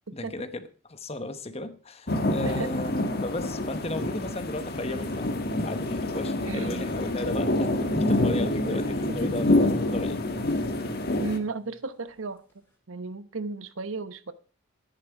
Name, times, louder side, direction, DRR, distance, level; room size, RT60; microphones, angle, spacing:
voice 1, 0.1-5.3 5.6-10.2, left 2 dB, 30° left, 1.0 m, -35 dB
sound 1, 2.1-11.4, left 1 dB, 50° left, 1.5 m, -27 dB
sound 2, 5.1-6.1 7.1-11.7 12.1-12.2, equal, 10° left, 4.2 m, -41 dB
voice 2, 6.4-6.9 11.2-12.4 12.9-14.3, right 3 dB, 80° right, 0.9 m, -34 dB
12.5 x 10.5 x 4.8 m
head